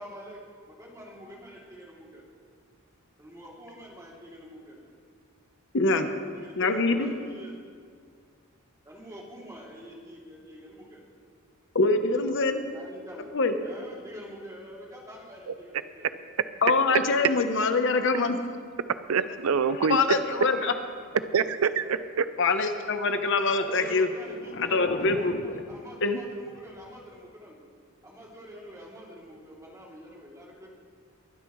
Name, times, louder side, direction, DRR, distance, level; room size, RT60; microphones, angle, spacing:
voice 1, 0.0-2.3 3.2-4.8 6.3-7.5 8.8-11.1 12.6-16.1 21.6-22.1 23.6-27.6 28.0-30.7, equal, 15° right, -4 dB, 2.8 m, -46 dB
voice 2, 5.7-6.1 6.6-7.1 11.7-12.6 13.3-13.5 16.6-18.4 19.7-20.7 22.4-24.1 24.6-25.3 26.0-26.2, left 3 dB, 60° left, 7 dB, 0.9 m, -24 dB
voice 3, 19.1-20.0 21.3-22.2, right 6 dB, 85° right, 13 dB, 0.5 m, -25 dB
sound 1, 19.4-21.4 23.9-27.0, left 3 dB, 40° left, 0.5 m, -42 dB
22.5 x 11.5 x 3.2 m, 2.1 s
head